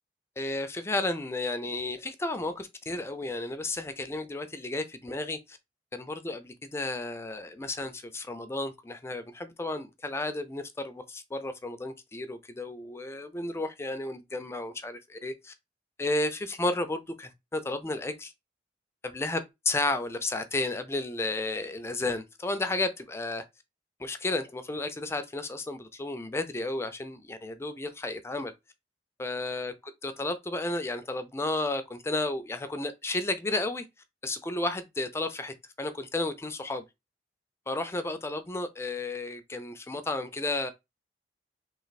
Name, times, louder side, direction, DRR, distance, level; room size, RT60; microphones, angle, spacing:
voice 1, 0.4-5.6 5.9-15.5 16.0-18.3 19.0-23.5 24.0-28.5 29.2-29.7 30.0-33.8 34.2-36.8 37.7-40.7, left 2 dB, 15° left, 0.4 m, -32 dB
3.2 x 2.5 x 4.0 m
head